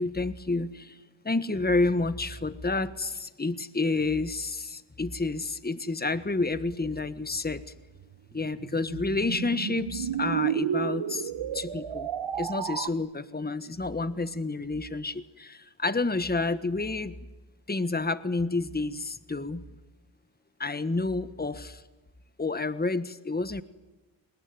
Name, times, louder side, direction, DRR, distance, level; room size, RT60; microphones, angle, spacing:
voice 1, 0.0-7.6 8.3-12.1 12.3-17.2 17.7-19.7 20.6-21.8 22.4-23.6, left 3 dB, 20° left, 13 dB, 1.5 m, -29 dB
sound 1, 7.9-12.9, right 9 dB, 75° right, 1.2 m, -32 dB
28.0 x 20.0 x 9.7 m, 1.1 s
cardioid pair, 50°, 48 cm